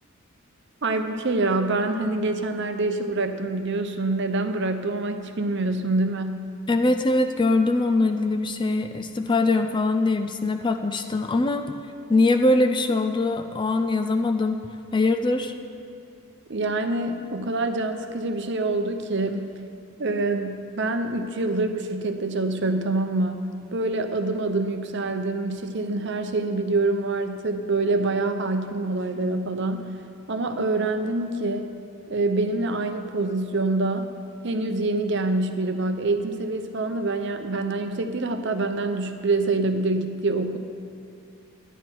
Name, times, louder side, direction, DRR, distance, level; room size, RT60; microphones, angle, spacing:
voice 1, 0.8-6.5 16.5-19.5 20.0-30.0 30.3-31.6 32.1-34.1 34.4-40.6, right 2 dB, 50° right, 7 dB, 0.7 m, -26 dB
voice 2, 6.7-11.8 12.1-14.6 14.9-15.5, left 2 dB, 20° left, 6 dB, 0.3 m, -22 dB
12.0 x 10.0 x 4.6 m, 2.4 s
head